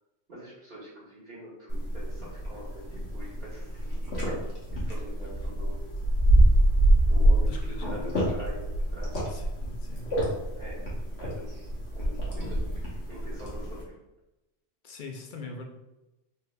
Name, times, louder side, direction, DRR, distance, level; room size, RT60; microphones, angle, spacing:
voice 1, 0.3-2.8 3.1-4.4 4.7-5.8 7.0-8.6 8.9-9.3 10.5-10.9 11.2-13.9, equal, 60° right, -11 dB, 1.5 m, -44 dB
sound 1, 1.7-13.8, right 1 dB, 75° left, 1.4 m, -26 dB
voice 2, 7.4-7.9 9.3-10.1 14.8-15.6, left 3 dB, 55° left, 3 dB, 0.6 m, -42 dB
4.0 x 3.9 x 2.2 m, 0.97 s
omnidirectional pair, 1.1 m